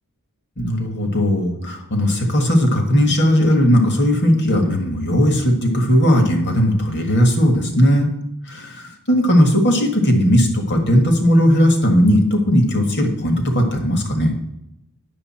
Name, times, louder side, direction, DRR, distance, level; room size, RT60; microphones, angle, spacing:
voice 1, 0.6-8.1 8.5-14.3, equal, 55° left, 4 dB, 1.6 m, -17 dB
9.5 x 6.8 x 4.3 m, 0.82 s
head